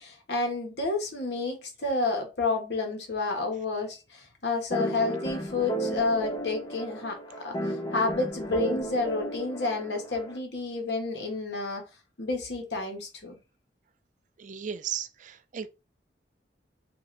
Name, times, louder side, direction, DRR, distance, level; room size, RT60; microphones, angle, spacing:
voice 1, 0.0-11.8 12.2-13.4, left 3 dB, 65° left, 1.2 m, -30 dB
sound 1, 4.7-10.4, right 1 dB, 25° left, 0.6 m, -33 dB
voice 2, 14.4-15.7, right 8 dB, 45° right, 0.3 m, -35 dB
3.2 x 2.7 x 4.0 m
head